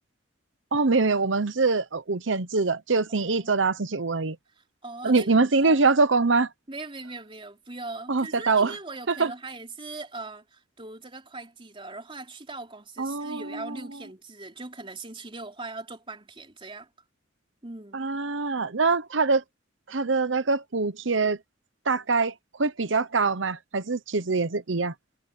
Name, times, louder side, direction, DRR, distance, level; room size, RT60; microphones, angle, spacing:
voice 1, 0.7-4.4 5.0-6.5 8.1-8.7 9.1-9.3 13.0-13.8 17.9-19.4 19.9-21.4 21.9-22.3 22.6-24.9, right 4 dB, 70° right, 1.0 m, -24 dB
voice 2, 3.1-3.5 4.6-5.3 5.6-5.8 6.7-16.9 17.6-18.1, right 3 dB, 30° right, 3.9 m, -40 dB
head